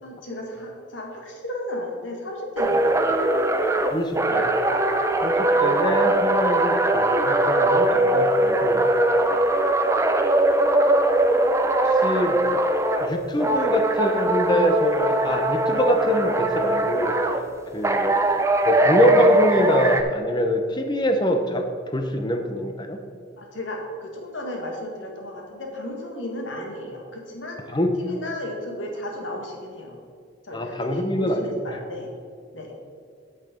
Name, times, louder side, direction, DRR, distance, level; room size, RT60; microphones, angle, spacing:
voice 1, 0.0-3.2 5.0-5.1 17.7-17.9 23.4-27.6 28.0-30.0 30.4-32.1 32.5-32.7, left 1 dB, 90° left, 1 dB, 1.7 m, -34 dB
sound 1, 2.6-13.1 13.4-17.4 17.8-20.0, right 1 dB, 15° right, 0.5 m, -21 dB
voice 2, 3.9-4.5 5.2-8.9 12.0-12.4 13.0-17.1 17.7-18.2 18.6-21.6 21.9-23.0 27.7-28.0 30.5-31.8, equal, 25° left, 5 dB, 0.8 m, -24 dB
9.6 x 5.8 x 5.1 m, 2.2 s
head